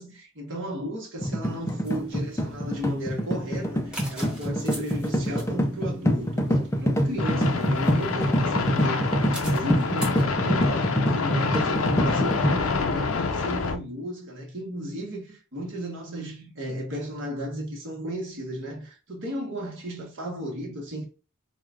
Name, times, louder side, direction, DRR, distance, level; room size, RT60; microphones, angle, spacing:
voice 1, 0.0-21.0, equal, 55° right, 1.2 m, -34 dB
sound 1, 1.2-12.6, equal, 10° left, 0.4 m, -26 dB
sound 2, 1.8-10.2, right 1 dB, 5° right, 1.1 m, -44 dB
sound 3, 7.2-13.8, left 4 dB, 65° left, 0.5 m, -27 dB
4.7 x 2.2 x 3.6 m
head